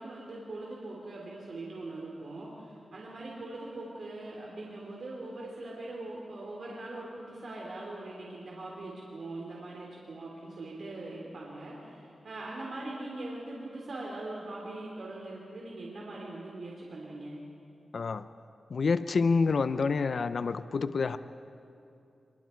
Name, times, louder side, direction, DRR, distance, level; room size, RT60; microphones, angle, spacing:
voice 1, 0.0-17.4, right 2 dB, 65° right, -3 dB, 3.4 m, -41 dB
voice 2, 17.9-18.3 18.7-21.2, left 4 dB, 65° left, 12 dB, 0.6 m, -28 dB
26.0 x 22.5 x 4.6 m, 2.6 s
wide cardioid pair, 85°, 0 cm